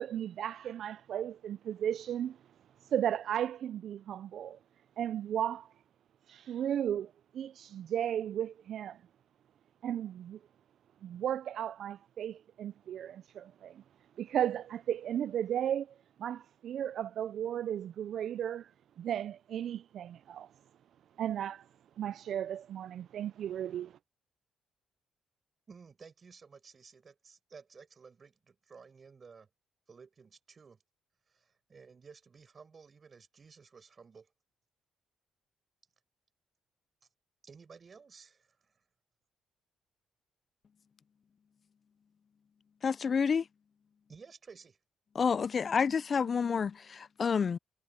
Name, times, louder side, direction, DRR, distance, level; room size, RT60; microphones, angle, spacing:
voice 1, 0.0-2.4 2.8-4.6 5.0-5.7 6.3-9.0 9.8-10.4 11.0-13.8 14.2-18.7 19.0-20.5 21.2-21.7 22.0-24.0, right 10 dB, 70° right, 0.4 m, -35 dB
voice 2, 25.7-29.5 29.9-30.8 31.3-34.3 37.4-38.7 44.1-44.8, right 5 dB, 40° right, 6.1 m, -55 dB
voice 3, 42.8-43.4 45.2-47.6, left 6 dB, 45° left, 0.3 m, -29 dB
cardioid pair, 90°, 0 cm